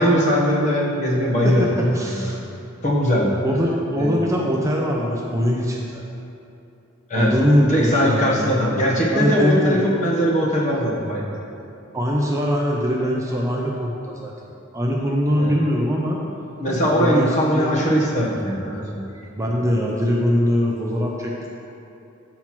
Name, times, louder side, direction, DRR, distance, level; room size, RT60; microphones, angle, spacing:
voice 1, 0.0-2.3 2.8-3.3 4.0-4.2 7.1-7.3 7.7-11.3 15.4-15.5 16.6-19.0, equal, 35° left, -3 dB, 1.1 m, -20 dB
voice 2, 1.9-2.4 3.4-6.0 7.1-8.5 9.1-9.8 11.9-14.3 14.7-16.2 16.9-17.7 19.4-21.5, equal, 15° right, -2 dB, 0.5 m, -22 dB
7.6 x 4.4 x 5.9 m, 2.8 s
head